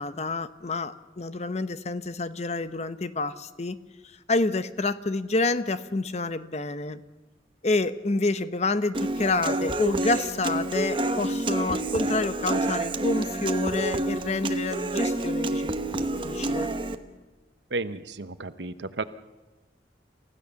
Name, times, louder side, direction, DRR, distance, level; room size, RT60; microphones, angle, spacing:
voice 1, 0.0-3.8 4.3-7.0 7.6-15.7 16.2-16.7, left 3 dB, 40° left, 13 dB, 0.8 m, -28 dB
Human voice / Acoustic guitar, 8.9-17.0, right 2 dB, 30° right, 1.0 m, -28 dB
voice 2, 17.7-19.0, right 3 dB, 80° right, 12 dB, 1.0 m, -33 dB
28.0 x 15.0 x 7.0 m, 1.2 s
head